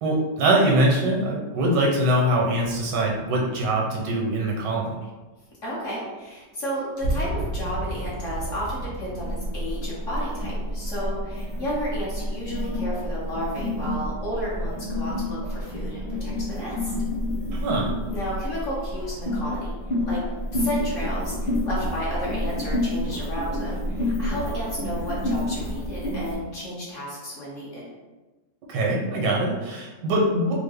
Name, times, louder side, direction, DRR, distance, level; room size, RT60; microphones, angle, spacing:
voice 1, 0.0-5.0 17.5-18.0 28.7-30.5, right 1 dB, 80° right, -2 dB, 1.4 m, -23 dB
sound 1, 3.2-4.1 7.0-9.7, right 1 dB, 75° left, 1.6 m, -32 dB
voice 2, 5.6-16.9 18.1-19.8 20.0-20.2 20.5-27.8, equal, 50° left, -7 dB, 1.2 m, -32 dB
sound 2, 9.2-26.4, left 1 dB, 35° left, 0.7 m, -29 dB
3.4 x 2.0 x 3.5 m, 1.2 s
omnidirectional pair, 1.9 m